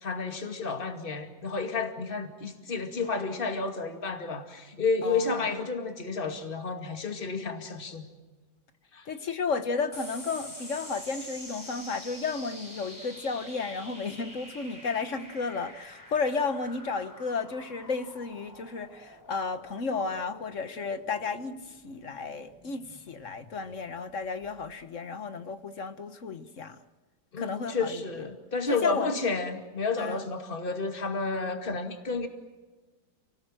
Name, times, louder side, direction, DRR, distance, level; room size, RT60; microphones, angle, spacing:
voice 1, 0.0-8.0 8.9-9.1 27.3-32.3, left 4 dB, 30° left, 2.4 m, -31 dB
voice 2, 5.0-5.5 9.1-21.6 21.8-26.8 27.4-28.0 28.7-29.2 30.0-30.2, left 4 dB, 50° left, 1.4 m, -33 dB
sound 1, 9.9-24.7, equal, 10° left, 4.2 m, -47 dB
29.5 x 19.0 x 7.8 m
omnidirectional pair, 1.9 m